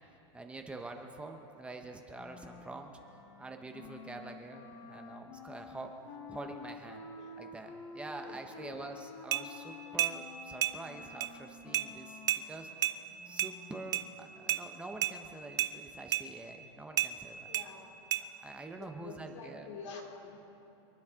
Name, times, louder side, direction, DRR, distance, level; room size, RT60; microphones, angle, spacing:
voice 1, 0.3-3.0 3.4-5.9 6.3-7.1 7.4-12.7 13.2-17.5 18.3-19.7, right 2 dB, 5° right, 4 dB, 0.8 m, -46 dB
Wind instrument woodwind instrument, 2.1-14.2, left 4 dB, 50° left, 1.4 m, -50 dB
voice 2, 8.2-8.9 17.5-18.2 18.8-20.4, left 5 dB, 85° left, 0 dB, 3.2 m, -48 dB
sound 1, 9.3-9.4 10.0-10.2 10.6-10.8 11.2-11.3 11.7-11.9 12.3-12.4 12.8-13.0 13.4-13.5 13.9-14.1 14.5-14.6 15.0-15.1 15.6-15.7 16.1-16.3 17.0-17.1 17.5-17.7 18.1-18.2, right 12 dB, 25° right, 0.4 m, -30 dB
28.0 x 10.0 x 3.6 m, 2.9 s
supercardioid pair, 160°, 15 cm